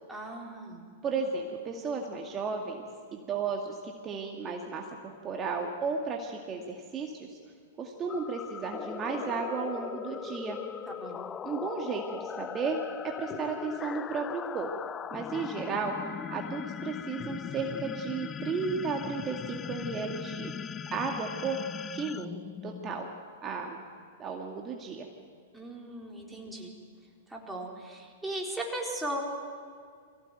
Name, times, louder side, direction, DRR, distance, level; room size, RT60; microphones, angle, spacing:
voice 1, 0.1-0.9 10.9-11.3 25.5-26.7 27.3-29.2, right 1 dB, 5° right, -2 dB, 4.3 m, -37 dB
voice 2, 1.0-2.8 3.1-7.4 7.8-10.6 11.4-14.8 15.1-15.9 16.3-20.5 20.9-21.6 21.9-22.3 22.6-23.1 23.4-23.8 24.2-25.1, right 4 dB, 25° right, 1 dB, 2.2 m, -34 dB
sound 1, 8.1-23.2, left 8 dB, 25° left, 0.5 m, -39 dB
23.0 x 16.5 x 9.2 m, 2.1 s
hypercardioid pair, 115°, 0 cm